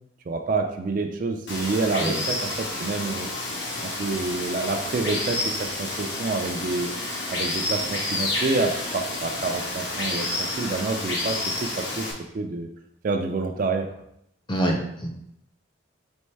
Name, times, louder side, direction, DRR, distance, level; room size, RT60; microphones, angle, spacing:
voice 1, 0.3-3.3 3.8-6.9 7.3-12.1 12.3-12.7 13.0-13.9, right 3 dB, 40° right, 4 dB, 0.3 m, -28 dB
Water, 1.5-12.1, left 2 dB, 60° left, 0.9 m, -30 dB
voice 2, 14.5-15.1, right 1 dB, 25° left, 1 dB, 0.5 m, -25 dB
4.4 x 3.1 x 3.3 m, 0.76 s
head